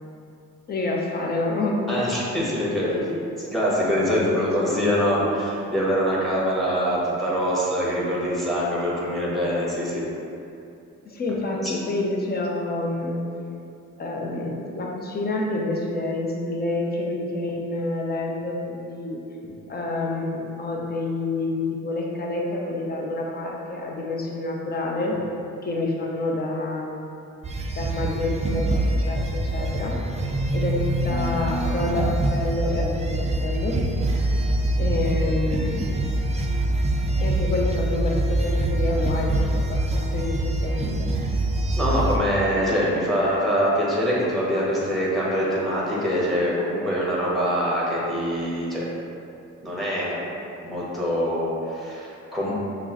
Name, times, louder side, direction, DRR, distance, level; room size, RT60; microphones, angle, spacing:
voice 1, 0.7-2.1 2.8-3.3 4.1-4.8 11.0-13.2 14.0-19.2 19.7-25.2 25.6-27.2 27.7-30.0 30.5-33.8 34.8-36.0 37.2-41.1, left 2 dB, 30° left, -1 dB, 0.7 m, -28 dB
voice 2, 1.9-2.9 3.5-10.1 11.3-11.4 11.6-11.7 41.8-48.8 49.6-50.2 50.6-52.5, equal, ahead, -6 dB, 1.2 m, -24 dB
sound 1, 27.4-42.2, right 1 dB, 20° right, 0.4 m, -24 dB
5.9 x 2.1 x 2.9 m, 2.7 s
cardioid pair, 90°, 30 cm